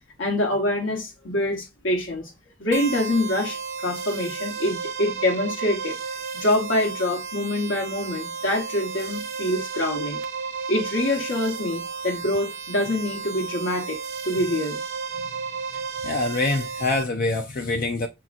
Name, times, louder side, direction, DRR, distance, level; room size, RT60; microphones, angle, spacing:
voice 1, 0.2-2.3 2.6-6.0 6.3-10.2 10.7-14.8, left 1 dB, 70° left, 1.0 m, -25 dB
sound 1, 2.7-17.0, right 5 dB, 60° right, 0.6 m, -33 dB
voice 2, 15.7-18.1, left 2 dB, 45° left, 0.5 m, -26 dB
6.0 x 2.9 x 2.4 m
head